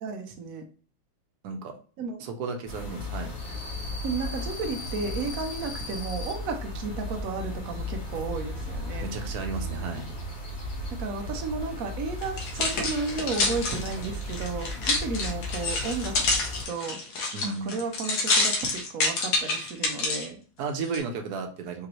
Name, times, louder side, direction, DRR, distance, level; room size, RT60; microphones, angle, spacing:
voice 1, 0.0-0.6 2.0-2.2 4.0-9.1 11.0-17.0 17.4-20.4, right 4 dB, 85° right, 4 dB, 0.7 m, -33 dB
voice 2, 2.2-3.3 9.0-10.0 17.3-17.8 20.6-21.9, right 4 dB, 65° right, 4 dB, 1.0 m, -33 dB
sound 1, 2.7-16.6, left 1 dB, 60° left, 2.2 m, -35 dB
sound 2, 12.2-20.3 20.8-21.0, left 3 dB, 75° left, 1.9 m, -27 dB
5.2 x 2.9 x 3.0 m, 0.40 s
omnidirectional pair, 2.4 m